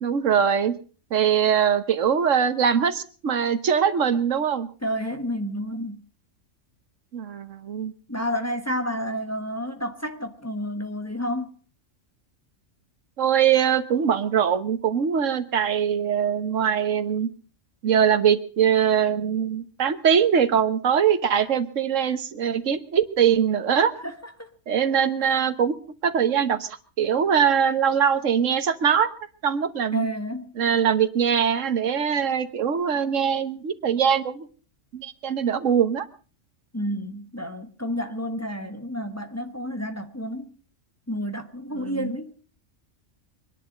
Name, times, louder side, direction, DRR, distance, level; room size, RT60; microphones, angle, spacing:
voice 1, 0.0-0.7 1.1-4.7 7.1-7.9 13.2-17.3 17.8-23.9 24.7-25.7 26.0-29.1 29.4-30.1 30.5-34.5 34.9-36.1 41.7-42.1, right 8 dB, 80° right, 1.5 m, -22 dB
voice 2, 4.8-6.0 8.1-11.5 24.0-24.5 25.2-25.4 29.9-30.5 36.7-40.5 41.1-42.3, equal, 15° left, 1.3 m, -30 dB
24.0 x 10.5 x 5.1 m
omnidirectional pair, 1.3 m